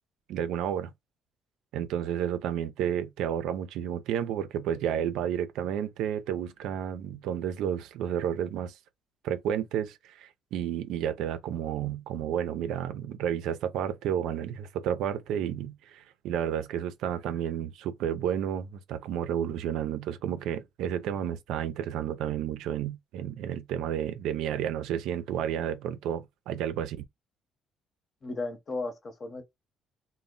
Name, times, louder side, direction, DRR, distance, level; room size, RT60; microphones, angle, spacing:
voice 1, 0.3-0.9 1.7-8.7 9.2-27.0, right 9 dB, 80° right, 0.4 m, -31 dB
voice 2, 28.2-29.4, left 3 dB, 45° left, 0.9 m, -35 dB
2.1 x 2.0 x 3.7 m
supercardioid pair, 80°, 0 cm